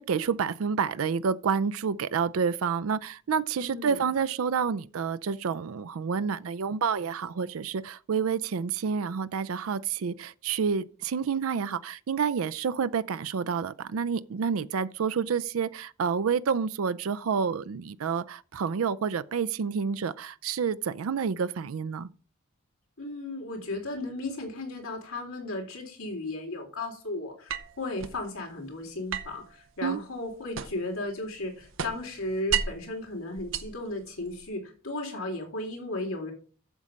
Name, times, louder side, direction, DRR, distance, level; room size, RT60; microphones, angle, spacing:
voice 1, 0.0-22.1 29.8-30.0, right 6 dB, 80° right, 0.4 m, -29 dB
voice 2, 3.6-4.0 23.0-36.3, left 2 dB, 85° left, 3.6 m, -35 dB
sound 1, 27.5-28.2 29.1-31.0 31.3-32.9 33.4-34.4, right 7 dB, 65° right, 0.8 m, -34 dB
8.1 x 7.3 x 5.1 m
head